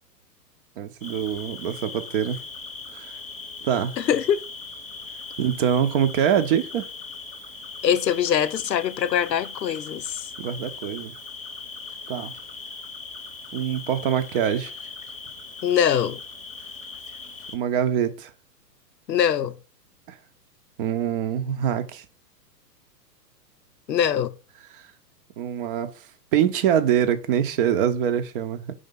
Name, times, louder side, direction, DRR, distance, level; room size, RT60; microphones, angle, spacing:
voice 1, 0.8-2.4 2.9-3.2 3.6-4.0 5.4-6.9 10.4-11.1 12.1-12.3 13.5-14.7 17.5-18.3 20.1-20.2 20.8-22.1 24.7-24.9 25.4-26.1 26.3-28.7, right 9 dB, 35° right, 0.7 m, -24 dB
Cricket, 1.0-17.6, left 4 dB, 15° left, 0.9 m, -39 dB
voice 2, 4.0-4.4 7.8-10.2 15.6-16.2 19.1-19.6 23.9-24.3, left 9 dB, 75° left, 0.7 m, -23 dB
5.3 x 3.5 x 5.1 m
figure-of-eight pair, 115°, 50 cm